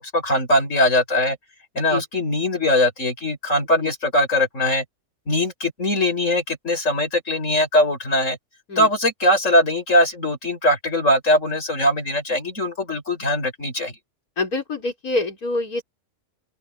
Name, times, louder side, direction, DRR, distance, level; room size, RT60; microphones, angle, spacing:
voice 1, 0.0-1.4 1.8-4.8 5.3-8.4 8.8-13.9, left 1 dB, 60° left, 7.2 m, -21 dB
voice 2, 14.4-15.8, left 3 dB, 85° left, 5.0 m, -26 dB
open air
omnidirectional pair, 1.5 m